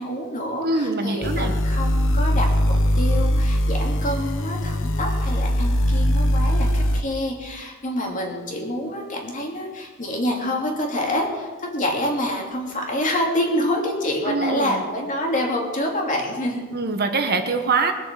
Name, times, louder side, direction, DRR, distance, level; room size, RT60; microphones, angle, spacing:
voice 1, 0.0-16.7, left 1 dB, 35° left, 0 dB, 2.9 m, -27 dB
voice 2, 0.6-1.5 14.2-14.8 16.7-17.9, right 3 dB, 45° right, 5 dB, 1.3 m, -23 dB
sound 1, 1.2-7.0, equal, 60° left, 1.1 m, -21 dB
22.0 x 7.6 x 7.6 m, 1.4 s
head